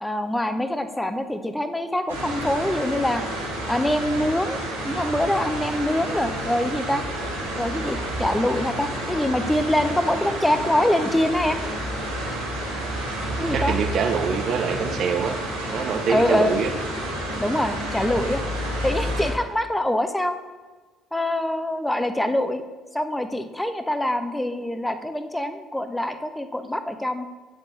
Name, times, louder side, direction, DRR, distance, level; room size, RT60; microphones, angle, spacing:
voice 1, 0.0-3.2 3.7-7.0 7.6-11.6 13.4-13.7 16.1-16.6 17.4-18.4 18.8-20.4 21.1-22.6 22.9-27.3, left 1 dB, 10° left, 9 dB, 0.6 m, -24 dB
sound 1, 2.1-19.3, right 1 dB, 90° right, 1.5 m, -30 dB
voice 2, 13.4-15.4 15.7-16.7, right 6 dB, 55° right, 6 dB, 0.5 m, -24 dB
8.7 x 4.3 x 3.1 m, 1.3 s
figure-of-eight pair, 50°, 0 cm